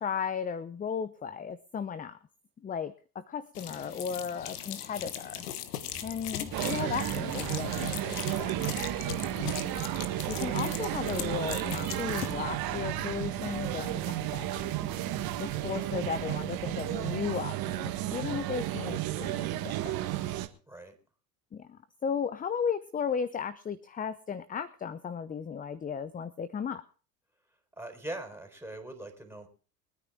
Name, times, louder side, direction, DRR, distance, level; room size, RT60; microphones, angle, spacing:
voice 1, 0.0-2.2 2.6-5.5 6.0-8.5 10.3-14.9 15.4-20.2 21.5-26.8, left 7 dB, 20° left, 15 dB, 0.7 m, -35 dB
sound 1, 3.5-12.3, left 11 dB, 75° left, 1.3 m, -40 dB
sound 2, 5.9-16.7, left 5 dB, 50° left, 3.9 m, -48 dB
sound 3, 6.5-20.5, right 15 dB, 50° right, 1.5 m, -33 dB
voice 2, 20.7-21.0 27.8-29.5, right 1 dB, 5° right, 4 dB, 4.1 m, -42 dB
23.0 x 9.6 x 3.6 m, 0.36 s
hypercardioid pair, 75°, 46 cm